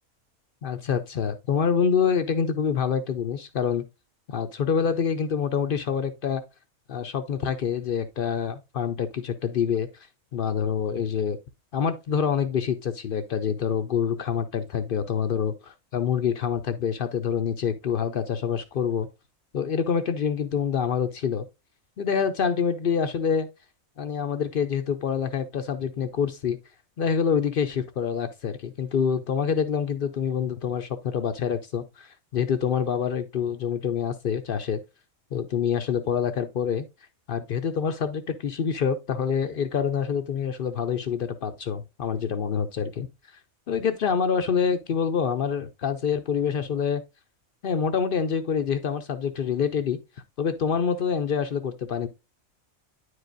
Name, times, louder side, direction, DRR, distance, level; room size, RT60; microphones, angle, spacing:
voice 1, 0.6-3.8 4.3-6.4 6.9-10.1 10.3-11.4 11.7-19.1 19.5-21.4 22.0-23.5 24.0-26.6 27.0-34.8 35.3-36.9 37.3-43.1 43.7-47.0 47.6-50.0 50.4-52.1, left 7 dB, 65° left, 0.5 m, -26 dB
9.8 x 4.8 x 2.5 m
omnidirectional pair, 1.5 m